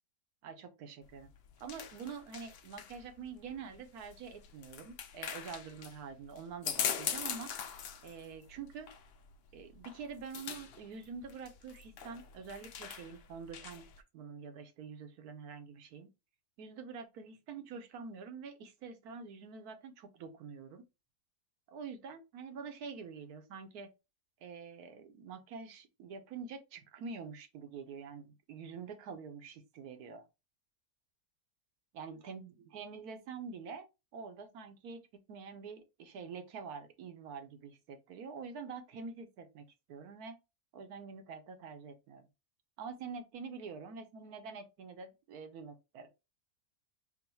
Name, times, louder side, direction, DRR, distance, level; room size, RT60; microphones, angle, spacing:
voice 1, 0.4-1.3 1.6-7.5 8.0-8.9 9.5-13.9 14.1-16.1 16.6-20.8 21.7-23.9 24.4-30.2 31.9-33.9 34.1-35.0 35.3-40.4 40.7-42.2 42.8-46.1, right 5 dB, 75° right, 1.3 m, -46 dB
sound 1, 1.0-14.0, left 8 dB, 75° left, 0.5 m, -42 dB
3.8 x 2.1 x 4.3 m
omnidirectional pair, 1.6 m